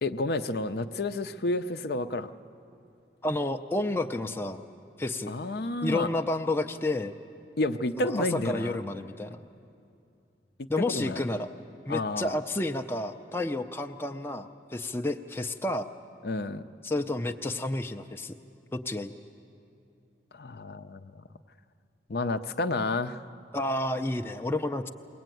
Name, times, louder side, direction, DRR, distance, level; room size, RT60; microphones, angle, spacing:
voice 1, 0.0-2.3 5.3-6.1 7.6-8.8 10.9-11.2 11.9-12.4 16.2-16.6 20.3-21.2 22.1-23.2, left 2 dB, 60° left, 9 dB, 0.6 m, -30 dB
voice 2, 3.2-4.6 5.0-5.3 5.8-7.2 8.1-9.4 10.7-11.5 11.9-15.9 16.8-18.3 18.7-19.1 23.5-24.9, left 1 dB, 15° left, 5 dB, 0.5 m, -30 dB
22.0 x 18.0 x 9.2 m, 2.6 s
head